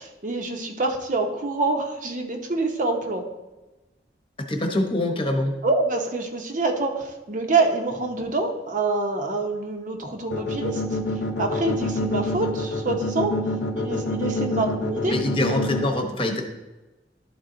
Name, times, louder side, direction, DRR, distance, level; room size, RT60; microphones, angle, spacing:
voice 1, 0.0-3.3 5.6-10.8 11.4-13.3 13.7-15.1, right 3 dB, 50° right, 3 dB, 0.9 m, -26 dB
voice 2, 4.4-5.5 15.0-16.4, left 1 dB, 30° left, 3 dB, 1.1 m, -24 dB
sound 1, 10.3-15.8, left 2 dB, 85° left, 0.9 m, -26 dB
12.0 x 4.0 x 3.8 m, 1.1 s
head